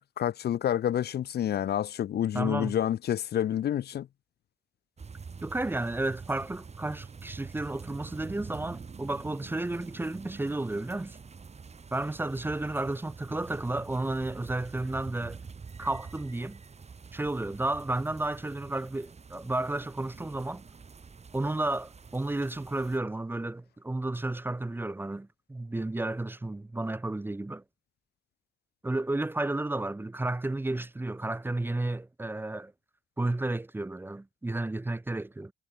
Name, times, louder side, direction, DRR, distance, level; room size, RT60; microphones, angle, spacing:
voice 1, 0.0-4.1, left 10 dB, 55° left, 0.6 m, -28 dB
voice 2, 2.3-2.8 5.4-11.2 11.9-15.4 15.8-16.6 17.1-20.6 21.3-27.6 28.8-32.7 33.2-35.5, right 2 dB, 10° right, 0.7 m, -32 dB
sound 1, 5.0-23.0, right 5 dB, 35° right, 2.4 m, -46 dB
cardioid pair, 90°, 20 cm